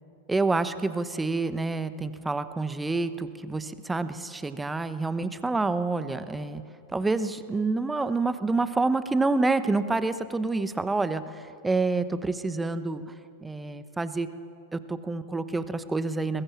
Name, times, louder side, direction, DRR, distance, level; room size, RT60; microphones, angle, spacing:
voice 1, 0.3-6.6 6.9-13.0 13.4-14.3 14.7-16.4, right 3 dB, 10° right, 13 dB, 1.1 m, -28 dB
21.5 x 21.5 x 7.4 m, 2.5 s
figure-of-eight pair, 90°, 0 cm